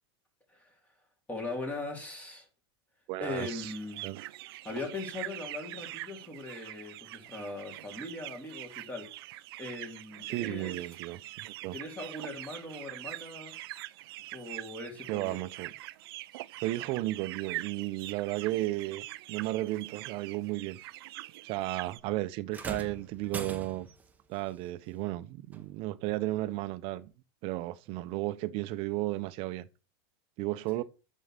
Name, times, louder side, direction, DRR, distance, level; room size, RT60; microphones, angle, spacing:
voice 1, 1.3-2.5 3.2-4.1 4.6-9.1 9.6-10.8 11.7-13.6 14.3-15.4, left 2 dB, 10° left, 2.9 m, -40 dB
voice 2, 3.1-3.7 4.0-4.2 10.3-11.8 15.1-15.7 16.6-20.8 21.4-23.9 24.3-27.1 27.4-29.7 30.4-30.8, right 17 dB, 45° right, 0.8 m, -34 dB
sound 1, 3.3-22.0, right 18 dB, 65° right, 0.5 m, -44 dB
sound 2, 22.5-24.1 25.5-25.7 26.5-26.6, right 5 dB, 10° right, 1.0 m, -41 dB
7.8 x 6.4 x 5.7 m
supercardioid pair, 150°, 13 cm